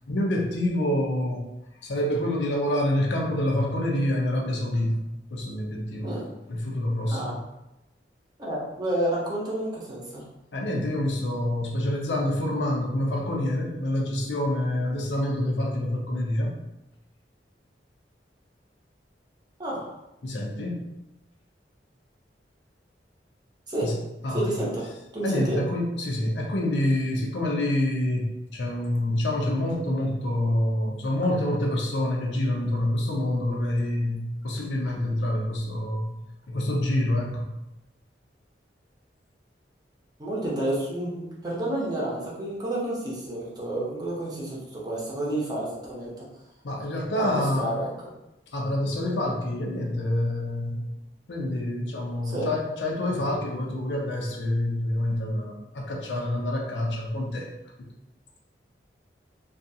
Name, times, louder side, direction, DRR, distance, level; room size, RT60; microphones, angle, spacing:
voice 1, 0.1-1.5 1.8-6.1 6.5-7.4 10.5-16.5 20.2-20.8 23.8-24.0 24.2-24.6 25.2-36.1 36.5-37.5 46.6-47.8 48.5-50.9 51.3-57.5 57.8-57.9, left 1 dB, 85° left, -1 dB, 0.6 m, -27 dB
voice 2, 8.4-10.2 19.6-19.8 23.7-23.9 24.3-24.9 25.1-25.6 40.2-46.2 47.2-47.9 52.2-52.5, right 1 dB, 25° right, -5 dB, 0.7 m, -30 dB
2.5 x 2.3 x 2.7 m, 0.93 s
head